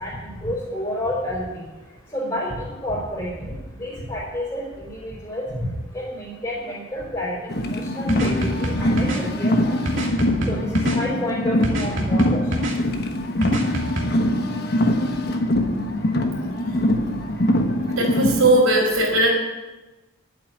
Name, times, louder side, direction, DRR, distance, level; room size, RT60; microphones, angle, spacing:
voice 1, 0.0-1.6 2.1-7.4 7.6-10.1 10.5-12.4, left 1 dB, 20° left, -6 dB, 4.2 m, -30 dB
Car, 7.5-18.6, left 1 dB, 50° left, 1.2 m, -23 dB
sound 1, 8.1-9.2 9.9-11.0 11.6-12.7 13.4-14.0, right 1 dB, 65° right, 2.7 m, -26 dB
voice 2, 17.9-19.3, right 1 dB, 85° right, -1 dB, 4.7 m, -19 dB
11.0 x 8.7 x 9.1 m, 1.1 s
head